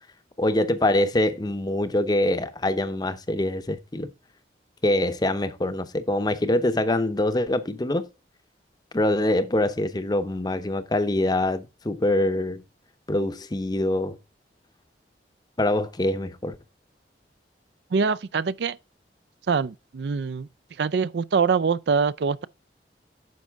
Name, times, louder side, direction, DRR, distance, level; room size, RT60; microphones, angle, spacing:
voice 1, 0.4-4.1 4.8-8.1 8.9-12.6 13.1-14.2 15.6-16.6, left 1 dB, 25° left, 0.7 m, -24 dB
voice 2, 17.9-18.8 19.5-20.5 20.8-22.5, right 5 dB, 75° right, 0.4 m, -24 dB
9.5 x 6.5 x 3.5 m
head